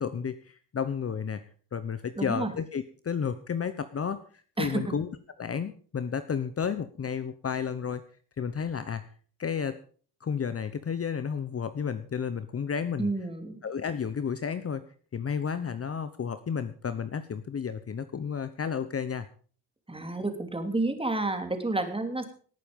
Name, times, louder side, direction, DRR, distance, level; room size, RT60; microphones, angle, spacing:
voice 1, 0.0-1.4 1.7-4.2 4.6-5.1 5.4-8.0 8.4-9.0 9.4-9.8 10.2-13.1 13.6-14.8 15.1-19.3, left 7 dB, 35° left, 12 dB, 1.0 m, -32 dB
voice 2, 2.2-2.5 4.6-4.8 13.0-13.6 19.9-22.2, right 2 dB, 15° right, 6 dB, 3.0 m, -30 dB
19.0 x 9.1 x 5.3 m, 0.43 s
cardioid pair, 95°, 42 cm